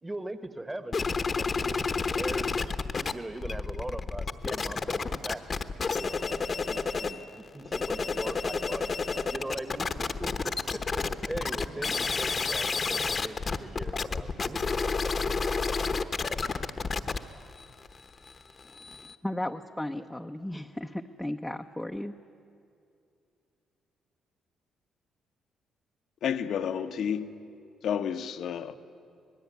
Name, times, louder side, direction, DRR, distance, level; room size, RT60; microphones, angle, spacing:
voice 1, 0.0-1.0 1.3-2.6 3.1-5.4 5.9-9.0 9.3-14.7, right 1 dB, 15° right, 1.5 m, -40 dB
sound 1, 0.9-3.1 3.4-7.2 7.6-19.2, left 4 dB, 35° left, 1.1 m, -30 dB
voice 2, 19.2-22.1, left 1 dB, 5° left, 0.8 m, -35 dB
voice 3, 26.2-27.3 27.8-28.7, left 8 dB, 70° left, 1.1 m, -30 dB
25.5 x 19.5 x 9.5 m
cardioid pair, 90°, 0 cm